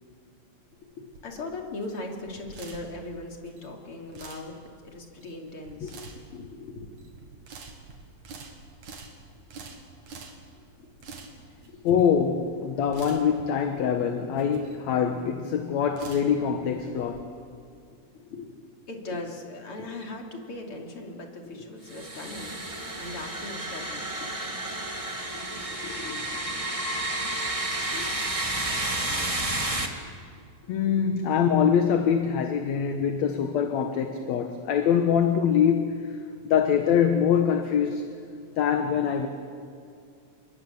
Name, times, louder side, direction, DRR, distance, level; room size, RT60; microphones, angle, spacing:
sound 1, 0.7-17.2, right 4 dB, 70° right, 3.6 m, -47 dB
voice 1, 1.2-4.6 4.8-7.0 11.7-11.9 15.8-16.0 18.3-18.6 18.9-26.4 27.9-28.1 28.7-29.3 29.6-30.1 30.6-31.3, left 2 dB, 45° left, 3.8 m, -40 dB
voice 2, 11.8-17.3 30.7-36.1 36.5-38.1 38.6-39.3, left 7 dB, 70° left, 2.4 m, -24 dB
sound 2, 21.9-29.9, right 1 dB, 15° right, 1.6 m, -31 dB
29.0 x 21.5 x 8.5 m
omnidirectional pair, 3.5 m